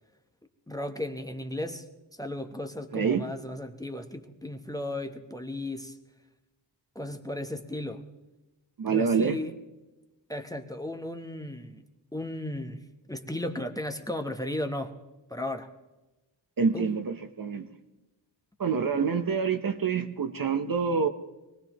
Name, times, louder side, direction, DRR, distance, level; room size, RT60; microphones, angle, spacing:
voice 1, 0.7-1.9 2.2-6.0 6.9-8.0 8.9-9.5 10.3-11.8 12.1-12.8 13.1-15.0 15.3-15.7 16.7-16.9, left 1 dB, 10° left, 6 dB, 0.9 m, -35 dB
voice 2, 2.9-3.2 8.8-9.4 16.6-17.7 18.6-21.1, right 5 dB, 45° right, 7 dB, 0.9 m, -26 dB
24.0 x 18.0 x 3.0 m, 1.1 s
cardioid pair, 90°, 48 cm